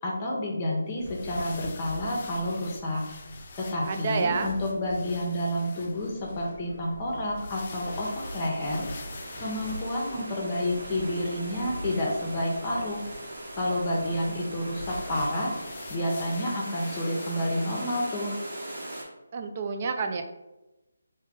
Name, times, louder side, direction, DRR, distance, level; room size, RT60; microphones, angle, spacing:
voice 1, 0.0-3.0 3.6-8.9 9.4-13.0 13.5-15.5 15.9-18.4, left 1 dB, 25° left, -1 dB, 0.8 m, -29 dB
sound 1, 0.9-11.0 14.7-18.1, left 4 dB, 40° left, 0.4 m, -46 dB
sound 2, 1.0-15.3, right 1 dB, 70° right, 1.2 m, -45 dB
voice 2, 3.9-4.5 19.3-20.2, right 4 dB, 35° right, 6 dB, 0.4 m, -28 dB
sound 3, 7.7-19.0, right 1 dB, 55° right, 1.5 m, -41 dB
3.5 x 2.6 x 3.7 m, 1.0 s
figure-of-eight pair, 160°, 0 cm